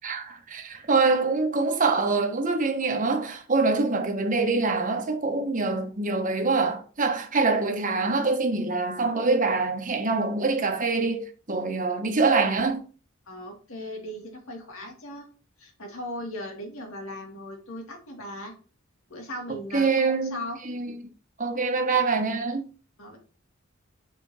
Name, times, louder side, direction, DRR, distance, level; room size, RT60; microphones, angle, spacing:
voice 1, 0.0-12.8 19.7-20.9 21.4-22.7, right 3 dB, 40° right, 1.1 m, -25 dB
voice 2, 13.3-15.3 15.6-18.5 19.1-20.6 23.0-23.2, left 1 dB, 80° left, 1.9 m, -38 dB
6.6 x 4.3 x 4.1 m
head